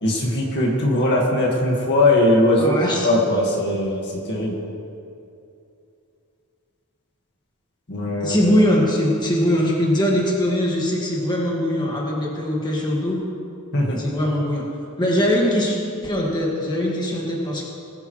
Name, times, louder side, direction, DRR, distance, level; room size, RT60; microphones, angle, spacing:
voice 1, 0.0-2.8 3.0-4.6 7.9-8.4 13.7-14.0, left 1 dB, 55° left, -1 dB, 1.9 m, -20 dB
voice 2, 2.6-3.1 8.2-13.2 14.0-14.7 15.0-17.7, equal, 20° left, -3 dB, 1.9 m, -21 dB
20.0 x 10.5 x 3.2 m, 2.6 s
head